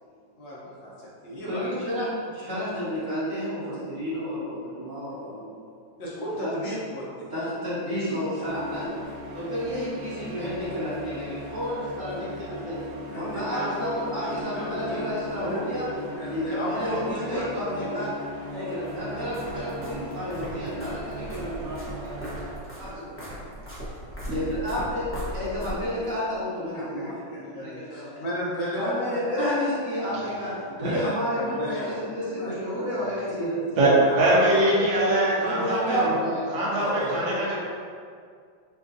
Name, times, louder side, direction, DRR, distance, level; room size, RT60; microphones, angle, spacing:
voice 1, 0.3-1.7 6.0-7.3 7.9-8.2 13.1-15.0 15.4-18.1 22.9-23.0 23.4-23.7 24.1-24.2 26.7-29.0 29.4-29.5 30.6-32.0 32.4-32.9 34.0-34.7 36.5-37.4, equal, 70° left, -6 dB, 1.6 m, -35 dB
voice 2, 1.5-5.8 6.4-6.5 7.3-8.9 9.3-12.8 13.1-15.8 16.3-18.1 18.5-23.5 24.2-28.3 28.8-34.0 34.3-34.4 34.6-34.9 35.4-36.5 36.8-37.4, equal, 45° right, -12 dB, 1.9 m, -31 dB
sound 1, 8.4-22.5, equal, 60° right, 1.3 m, -39 dB
sound 2, 18.8-26.1, equal, 10° left, 0.7 m, -38 dB
voice 3, 33.8-36.1 36.5-37.6, right 1 dB, 75° right, -6 dB, 1.7 m, -22 dB
6.0 x 2.6 x 2.6 m, 2.2 s
omnidirectional pair, 2.1 m